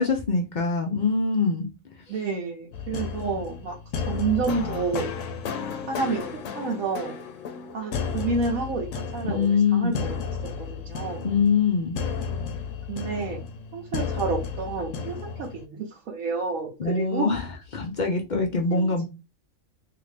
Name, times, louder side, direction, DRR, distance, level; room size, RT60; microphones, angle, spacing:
voice 1, 0.0-1.7 9.3-10.0 11.2-12.0 16.8-17.4 17.7-19.1, left 4 dB, 55° left, 0.5 m, -23 dB
voice 2, 2.1-3.7 4.1-5.1 5.9-6.3 6.5-7.1 7.7-10.2 10.6-11.3 12.9-13.4 13.7-17.3 18.7-19.1, right 4 dB, 80° right, 1.1 m, -29 dB
sound 1, 2.7-15.6, left 6 dB, 70° left, 0.9 m, -33 dB
2.8 x 2.5 x 3.3 m
omnidirectional pair, 1.4 m